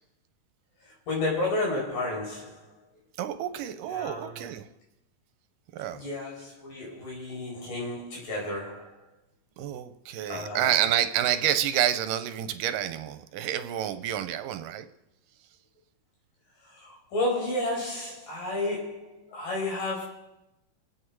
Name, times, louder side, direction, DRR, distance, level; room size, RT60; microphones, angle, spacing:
voice 1, 0.8-2.7 3.9-4.4 5.9-9.0 10.3-10.7 16.6-20.1, left 2 dB, 70° left, -3 dB, 6.5 m, -32 dB
voice 2, 3.2-4.7 5.7-6.0 9.6-14.9, right 11 dB, 80° right, 10 dB, 2.2 m, -28 dB
25.5 x 8.8 x 4.7 m, 0.90 s
omnidirectional pair, 4.0 m